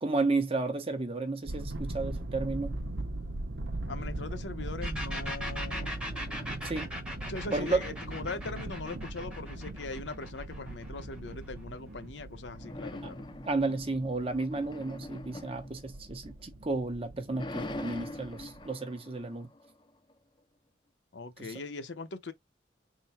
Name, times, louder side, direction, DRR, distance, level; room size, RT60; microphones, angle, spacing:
voice 1, 0.0-2.8 6.6-6.9 7.5-7.8 13.5-19.5 21.4-21.5, right 3 dB, 30° right, 0.9 m, -32 dB
sound 1, 1.4-18.7, right 2 dB, 75° right, 0.8 m, -40 dB
voice 2, 3.9-6.1 7.3-13.2 21.1-22.3, left 3 dB, 75° left, 0.8 m, -40 dB
sound 2, 4.8-12.3, equal, 5° right, 1.0 m, -40 dB
sound 3, 5.4-7.1 7.4-10.2 12.5-16.6 17.0-20.1, left 2 dB, 25° left, 0.5 m, -45 dB
3.8 x 2.1 x 4.2 m
head